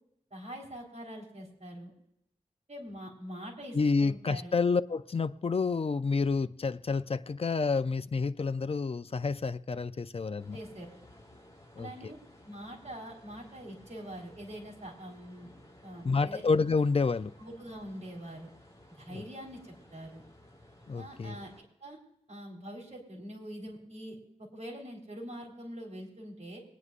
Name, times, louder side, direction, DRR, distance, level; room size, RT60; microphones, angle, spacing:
voice 1, 0.3-1.9 2.7-4.5 10.5-10.9 11.8-12.2 12.4-15.5 15.8-16.4 17.4-18.5 19.0-20.2 20.9-21.5 21.8-22.0 22.3-26.6, equal, 55° right, 3.9 m, -44 dB
voice 2, 3.7-10.6 11.8-12.1 16.0-17.3 19.1-19.2 20.9-21.4, left 4 dB, 50° left, 0.5 m, -29 dB
sound 1, 10.4-21.6, left 1 dB, 25° left, 5.6 m, -57 dB
23.5 x 9.6 x 2.5 m
wide cardioid pair, 80°, 13 cm